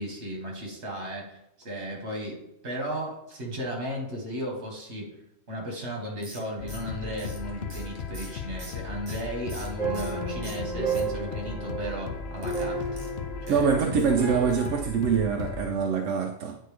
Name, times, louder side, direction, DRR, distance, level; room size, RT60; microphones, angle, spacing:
voice 1, 0.0-5.1 5.5-12.8 13.4-13.7, equal, 65° right, 1.9 m, -35 dB
sound 1, 6.2-10.2 10.4-11.4 12.4-14.1 14.5-14.8 15.1-15.2 15.5-15.6, right 2 dB, 35° right, 1.2 m, -47 dB
sound 2, 6.6-15.7, left 5 dB, 65° left, 0.8 m, -37 dB
sound 3, 9.8-14.8, right 4 dB, 5° left, 2.8 m, -33 dB
voice 2, 13.5-16.6, right 6 dB, 90° right, 0.9 m, -24 dB
9.1 x 4.2 x 3.3 m
omnidirectional pair, 1.2 m